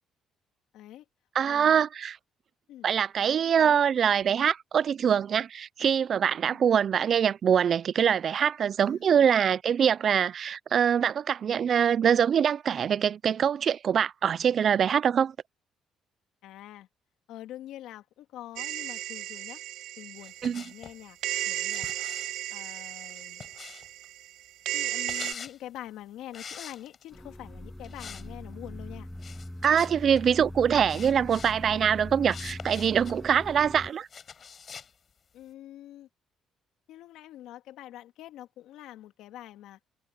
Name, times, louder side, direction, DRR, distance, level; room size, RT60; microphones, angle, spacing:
voice 1, 0.7-1.0 1.5-1.8 2.7-2.9 3.6-3.8 6.5-6.6 8.8-9.3 16.4-16.9 17.3-19.6 20.0-21.2 21.5-21.9 22.5-23.4 24.7-29.1 35.3-36.1 36.9-39.8, left 13 dB, 80° left, 2.4 m, -45 dB
voice 2, 1.3-2.2 2.8-15.3 20.4-20.6 29.6-34.1, right 8 dB, 55° right, 0.5 m, -24 dB
sound 1, 18.6-20.9 21.2-25.3, right 14 dB, 80° right, 0.8 m, -35 dB
sound 2, 20.2-21.0 21.7-24.1 24.8-25.6 26.3-27.2 27.8-28.3 28.5-28.7 29.2-30.3 30.9-31.6 32.3-33.2 34.1-34.9, left 6 dB, 45° left, 5.9 m, -44 dB
sound 3, 27.1-33.9, left 1 dB, 5° left, 7.0 m, -41 dB
supercardioid pair, 75°, 0 cm